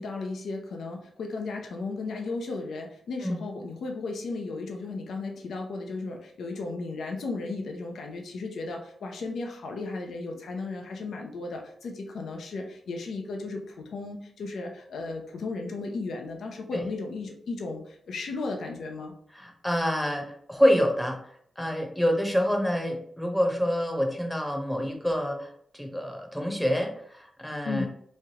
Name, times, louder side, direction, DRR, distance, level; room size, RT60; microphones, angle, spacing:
voice 1, 0.0-19.1 27.6-27.9, left 3 dB, 80° left, 2 dB, 0.5 m, -35 dB
voice 2, 19.3-21.2 21.6-25.5 25.7-27.9, equal, 5° left, 2 dB, 0.8 m, -27 dB
3.1 x 2.3 x 2.8 m, 0.66 s
cardioid pair, 70°, 0 cm